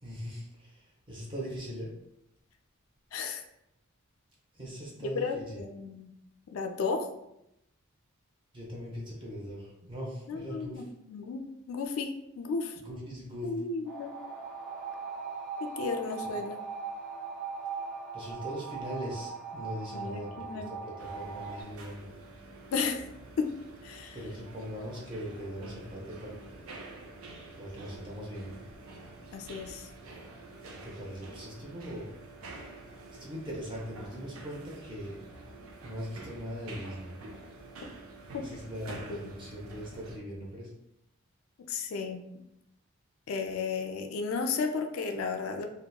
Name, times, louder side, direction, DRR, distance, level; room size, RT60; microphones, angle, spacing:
voice 1, 0.0-1.9 4.5-5.6 8.5-10.8 12.8-13.5 16.2-16.3 18.1-22.1 24.1-26.7 27.5-28.6 30.7-32.1 33.1-35.2 35.8-37.1 38.4-40.7, equal, 25° right, -3 dB, 0.6 m, -40 dB
voice 2, 3.1-3.4 5.0-6.1 6.5-7.1 10.3-10.8 11.1-11.4 11.7-12.1 12.4-12.8 13.4-14.2 15.6-16.6 19.9-20.7 22.7-23.0 23.4-23.5 23.8-24.2 29.3-29.9 38.3-38.4 38.9-39.3 41.7-42.2 43.3-45.7, left 4 dB, 75° left, 6 dB, 0.3 m, -33 dB
sound 1, 13.8-21.6, right 5 dB, 5° right, 1.0 m, -39 dB
sound 2, 21.0-40.2, right 2 dB, 80° right, 0.4 m, -48 dB
2.7 x 2.1 x 2.2 m, 0.81 s
head